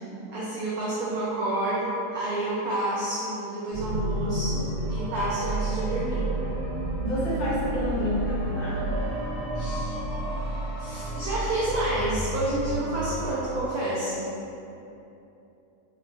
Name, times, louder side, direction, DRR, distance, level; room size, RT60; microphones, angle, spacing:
voice 1, 0.3-6.2 9.5-10.0 10.8-14.3, right 1 dB, 90° right, -7 dB, 0.8 m, -29 dB
sound 1, 3.7-13.3, right 1 dB, 40° right, 0.7 m, -30 dB
voice 2, 7.0-8.8, left 1 dB, 80° left, -10 dB, 1.8 m, -29 dB
4.2 x 2.0 x 3.1 m, 2.8 s
omnidirectional pair, 2.1 m